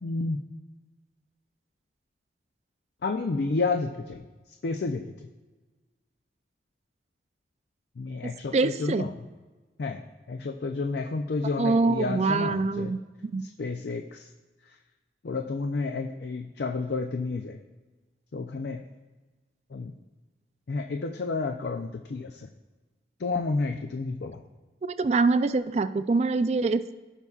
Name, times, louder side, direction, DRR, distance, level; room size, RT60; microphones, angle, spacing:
voice 1, 0.0-0.5 3.0-4.2 4.6-5.3 8.0-9.3 9.8-10.0 10.3-12.9 13.4-14.3 14.6-14.8 15.2-17.6 18.3-18.8 19.7-19.9 20.7-22.5 23.2-24.4, left 3 dB, 70° left, 5 dB, 0.4 m, -31 dB
voice 2, 8.5-9.0 11.6-13.4 24.9-27.0, right 3 dB, 35° right, 13 dB, 0.3 m, -25 dB
16.5 x 5.5 x 2.4 m, 1.3 s
head